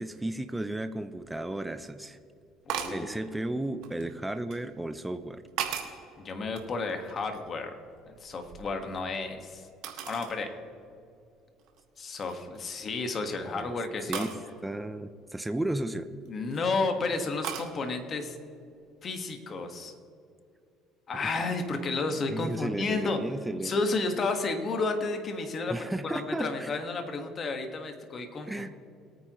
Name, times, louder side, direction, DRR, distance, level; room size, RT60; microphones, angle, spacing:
voice 1, 0.0-2.2 2.9-5.4 13.4-13.7 14.1-14.3 14.6-16.1 21.1-21.2 22.3-23.7 25.7-26.7 28.5-28.7, right 1 dB, 10° right, 9 dB, 0.6 m, -34 dB
voice 2, 2.7-3.3 6.2-7.7 8.0-9.7 10.1-10.5 12.0-14.3 16.3-18.4 19.0-19.9 21.1-23.2 23.6-25.8 26.0-28.7, left 3 dB, 35° left, 5 dB, 1.6 m, -32 dB
sound 1, 2.7-3.0 3.8-4.6 5.2-6.0 6.5-7.6 7.9-9.2 9.8-10.4 10.9-11.0 11.6-11.8 12.1-12.6 14.1-14.4 16.1-16.6 17.4-17.7, right 9 dB, 75° right, 1.6 m, -37 dB
21.5 x 9.3 x 3.1 m, 2.5 s
cardioid pair, 115°, 0 cm